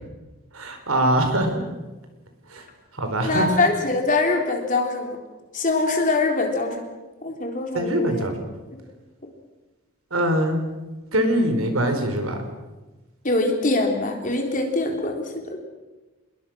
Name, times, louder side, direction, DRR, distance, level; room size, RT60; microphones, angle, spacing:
voice 1, 0.5-1.6 2.5-2.6 2.9-3.5 7.7-8.3 10.1-10.6 11.1-12.4, right 1 dB, 75° right, 6 dB, 4.4 m, -22 dB
voice 2, 3.2-5.2 5.5-6.9 7.2-8.3 13.2-15.6, left 2 dB, 35° left, 3 dB, 3.8 m, -23 dB
27.5 x 21.5 x 6.4 m, 1.2 s
head